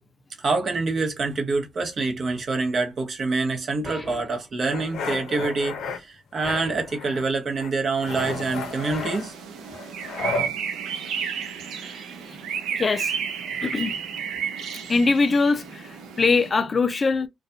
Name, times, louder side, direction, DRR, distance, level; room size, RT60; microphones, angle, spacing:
voice 1, 0.4-9.3, right 3 dB, 45° right, 0.8 m, -26 dB
sound 1, 3.8-4.5 6.4-7.0 8.9-9.4, left 1 dB, 5° left, 1.1 m, -40 dB
sound 2, 4.7-6.0 6.4-7.3 7.6-10.5, left 4 dB, 80° left, 0.6 m, -33 dB
sound 3, 8.1-16.5, right 7 dB, 80° right, 0.5 m, -32 dB
voice 2, 12.8-13.1 13.6-14.0 14.9-17.3, left 4 dB, 35° left, 0.4 m, -22 dB
2.4 x 2.2 x 2.6 m
cardioid pair, 90°, 0 cm